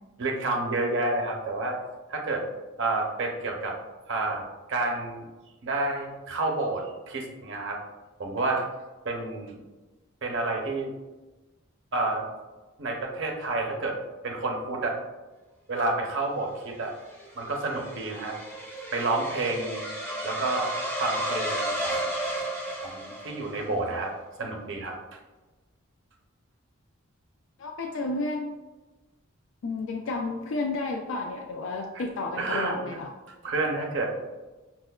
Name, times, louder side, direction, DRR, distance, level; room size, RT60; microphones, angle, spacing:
voice 1, 0.2-1.8 2.1-2.4 2.8-3.7 4.1-4.4 4.7-5.2 5.6-7.8 8.2-8.7 9.0-9.6 10.2-10.9 11.9-12.3 12.8-14.0 14.2-15.0 15.7-16.9 17.3-18.4 18.9-19.9 20.2-20.7 21.0-22.1 22.8-24.1 24.4-24.9 31.9-32.0 32.4-33.0 33.4-34.2, right 2 dB, 60° right, 1 dB, 0.6 m, -29 dB
sound 1, 16.7-23.7, right 1 dB, 10° left, 0.5 m, -33 dB
voice 2, 27.6-28.5 29.6-33.1, left 3 dB, 65° left, 2 dB, 0.3 m, -31 dB
5.8 x 2.1 x 2.2 m, 1.2 s
head